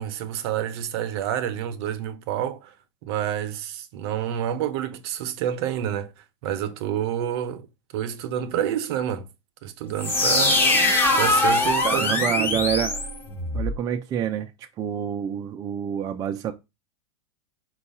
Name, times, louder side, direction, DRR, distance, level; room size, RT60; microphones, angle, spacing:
voice 1, 0.0-2.7 3.0-6.1 6.4-7.7 7.9-9.3 9.6-10.6 11.2-12.6, right 10 dB, 60° right, 0.7 m, -28 dB
sound 1, 10.0-13.8, left 2 dB, 15° left, 0.8 m, -22 dB
voice 2, 11.8-13.1 13.5-16.5, right 9 dB, 25° right, 0.4 m, -27 dB
4.5 x 2.3 x 4.1 m
supercardioid pair, 140°, 15 cm